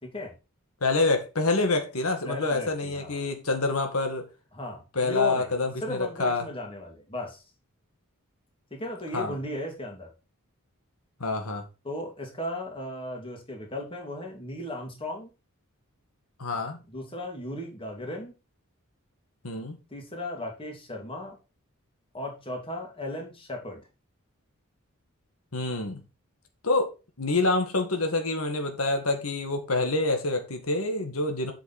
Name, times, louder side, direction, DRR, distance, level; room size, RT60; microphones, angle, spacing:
voice 1, 0.0-0.3 2.2-3.3 4.5-5.5 5.8-7.4 8.7-10.1 11.8-15.3 16.9-18.3 19.9-21.4 22.1-23.8, left 1 dB, 25° left, 2.7 m, -36 dB
voice 2, 0.8-4.2 4.9-6.5 9.1-9.3 11.2-11.6 16.4-16.8 19.4-19.8 25.5-26.0 26.6-26.9 27.2-31.5, left 2 dB, 80° left, 1.9 m, -27 dB
8.2 x 6.4 x 4.3 m
head